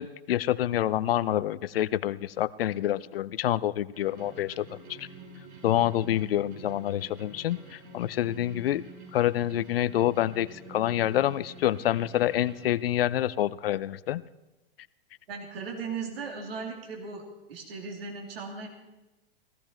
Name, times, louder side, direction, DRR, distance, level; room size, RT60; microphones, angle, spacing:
voice 1, 0.0-5.1 5.6-8.8 9.1-14.2, left 12 dB, 70° left, 17 dB, 0.6 m, -27 dB
sound 1, 3.9-12.7, right 2 dB, 55° right, 7.1 m, -48 dB
voice 2, 15.3-17.2 17.5-18.7, right 5 dB, 75° right, 1 dB, 3.1 m, -37 dB
16.5 x 15.0 x 4.5 m, 1.0 s
hypercardioid pair, 115°, 30 cm